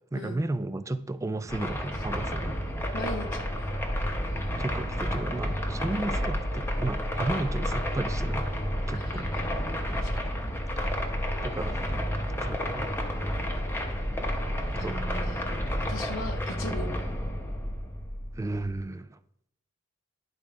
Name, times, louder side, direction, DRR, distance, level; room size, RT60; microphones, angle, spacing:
voice 1, 0.1-2.6 4.6-8.5 8.9-9.3 11.4-13.0 14.7-15.0 18.4-19.2, right 2 dB, 15° right, 12 dB, 0.3 m, -34 dB
sound 1, 1.5-18.8, equal, 10° left, 0.8 m, -30 dB
voice 2, 2.9-3.8 8.9-9.5 10.0-10.1 14.8-15.6 15.9-16.9, left 2 dB, 85° left, 4 dB, 0.9 m, -38 dB
11.0 x 4.7 x 3.6 m, 0.74 s
head